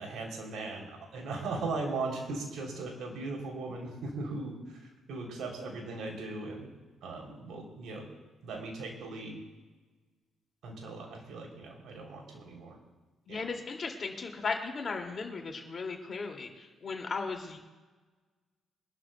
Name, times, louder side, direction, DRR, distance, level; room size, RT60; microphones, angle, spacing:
voice 1, 0.0-6.7 7.0-8.1 8.4-9.4 10.6-12.8 13.3-13.5, right 3 dB, 70° right, 1 dB, 3.2 m, -38 dB
voice 2, 13.2-17.6, left 4 dB, 45° left, 3 dB, 2.3 m, -36 dB
24.0 x 12.0 x 2.3 m, 1.3 s
hypercardioid pair, 45°, 0 cm